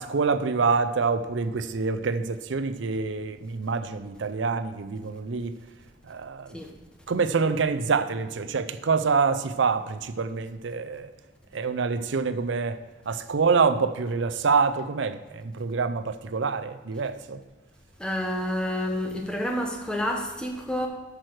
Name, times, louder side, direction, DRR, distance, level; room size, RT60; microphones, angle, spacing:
voice 1, 0.0-5.5 6.1-6.6 7.1-11.1 11.5-17.4, right 5 dB, 75° right, 0.5 m, -26 dB
voice 2, 18.0-20.9, left 1 dB, 5° left, 1.0 m, -29 dB
9.0 x 6.2 x 4.7 m
head